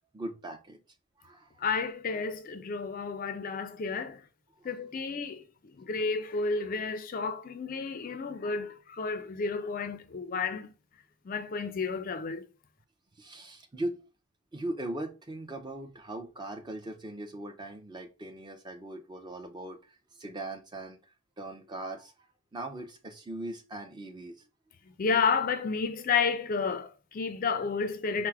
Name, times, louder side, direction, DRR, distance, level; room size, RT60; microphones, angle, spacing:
voice 1, 0.1-0.8 1.2-1.6 4.6-5.1 13.2-14.0 14.5-21.0 21.4-22.1 22.5-24.4 25.9-26.0, right 1 dB, 20° right, 0.5 m, -40 dB
voice 2, 1.6-4.2 4.6-10.7 11.2-12.5 25.0-28.3, left 5 dB, 40° left, 0.3 m, -31 dB
4.6 x 2.0 x 4.5 m
head